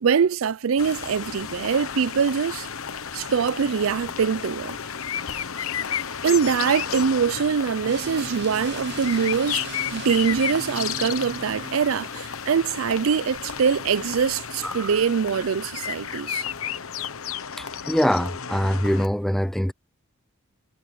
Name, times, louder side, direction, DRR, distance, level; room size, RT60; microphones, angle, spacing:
voice 1, 0.0-2.7 3.1-4.8 6.2-9.6 9.9-16.4, right 6 dB, 75° right, 0.5 m, -23 dB
sound 1, 0.8-19.1, left 8 dB, 85° left, 1.1 m, -33 dB
sound 2, 4.8-11.7, right 3 dB, 25° right, 4.1 m, -57 dB
sound 3, 7.8-11.8, right 5 dB, 55° right, 1.0 m, -38 dB
voice 2, 17.6-19.7, equal, ahead, 0.3 m, -23 dB
head